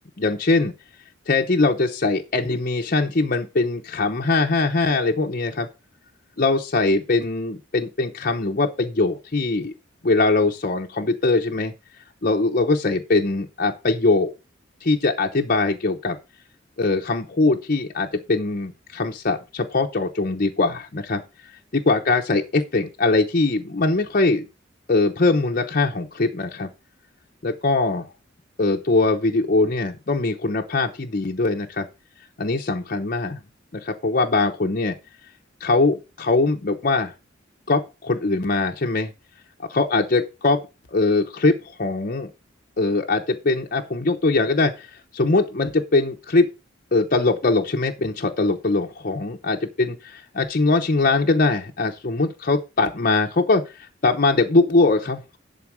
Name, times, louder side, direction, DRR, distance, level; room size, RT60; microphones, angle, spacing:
voice 1, 0.2-0.7 1.3-5.7 6.4-9.7 10.0-11.7 12.2-14.3 14.8-16.2 16.8-21.2 21.7-24.5 24.9-26.7 27.4-28.1 28.6-31.9 32.4-33.4 33.7-35.0 35.6-37.1 37.7-39.1 39.7-40.6 40.9-42.3 42.8-44.9 45.1-46.5 46.9-49.9 50.3-55.4, left 3 dB, 45° left, 2 dB, 0.8 m, -21 dB
11.0 x 4.0 x 6.2 m, 0.29 s
head